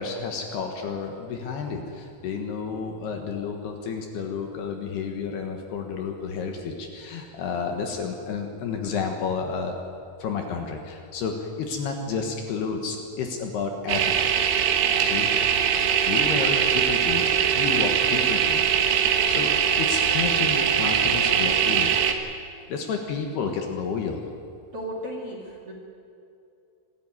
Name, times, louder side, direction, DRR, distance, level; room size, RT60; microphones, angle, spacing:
voice 1, 0.0-9.8 10.2-14.3 15.0-15.3 16.1-17.3 17.5-18.6 19.3-21.9 22.7-24.2, left 5 dB, 65° left, 3 dB, 3.0 m, -31 dB
sound 1, 13.9-22.1, right 8 dB, 80° right, 3.8 m, -22 dB
voice 2, 24.7-25.7, equal, 40° right, -2 dB, 2.6 m, -34 dB
24.0 x 13.5 x 9.3 m, 2.6 s
omnidirectional pair, 5.6 m